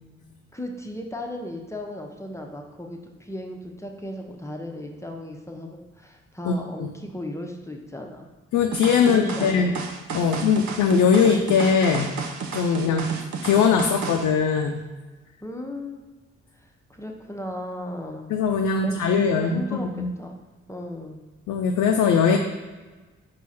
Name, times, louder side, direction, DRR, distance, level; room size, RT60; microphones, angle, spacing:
voice 1, 0.5-8.3 9.0-9.9 10.2-10.5 12.8-13.2 15.4-16.0 16.9-18.3 18.8-20.4 20.7-21.2 22.3-22.4, left 1 dB, 10° left, 2 dB, 0.7 m, -36 dB
voice 2, 6.4-6.9 8.5-9.7 10.1-12.1 12.5-13.1 13.4-14.8 18.3-20.1 21.5-22.4, left 6 dB, 70° left, 3 dB, 0.5 m, -21 dB
sound 1, 8.7-14.3, right 5 dB, 65° right, 0.6 m, -32 dB
4.6 x 2.4 x 4.2 m, 1.3 s
supercardioid pair, 45°, 31 cm